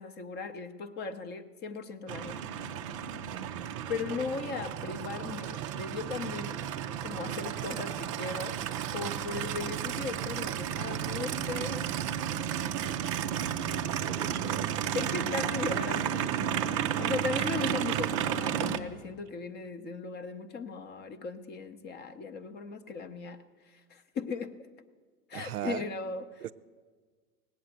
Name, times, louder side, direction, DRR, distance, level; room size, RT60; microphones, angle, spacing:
voice 1, 0.0-2.4 3.9-6.6 7.0-8.6 8.9-11.8 14.9-24.5 25.3-26.4, left 4 dB, 20° left, 10 dB, 0.7 m, -38 dB
Aircraft, 2.1-18.8, right 9 dB, 25° right, 0.3 m, -33 dB
voice 2, 3.3-3.7 14.1-14.8 25.3-25.9 26.4-26.5, right 13 dB, 70° right, 16 dB, 0.5 m, -39 dB
18.5 x 8.0 x 8.1 m, 1.5 s
figure-of-eight pair, 90°, 47 cm